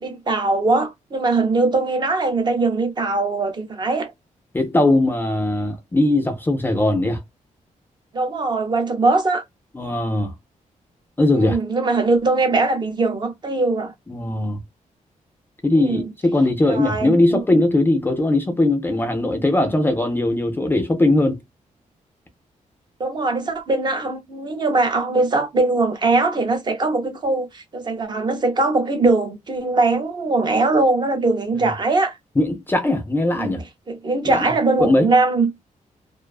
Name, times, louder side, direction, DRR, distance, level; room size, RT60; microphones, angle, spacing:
voice 1, 0.0-4.1 8.1-9.4 11.3-13.9 15.7-16.0 16.6-17.4 23.0-32.2 33.4-33.6 33.9-35.5, right 3 dB, 35° right, 0.6 m, -21 dB
voice 2, 4.5-7.2 9.7-10.3 11.2-11.6 14.1-14.6 15.6-21.4 32.4-33.6 34.3-34.5 34.8-35.1, left 2 dB, 15° left, 0.4 m, -19 dB
2.4 x 2.2 x 2.3 m
wide cardioid pair, 160°, 14 cm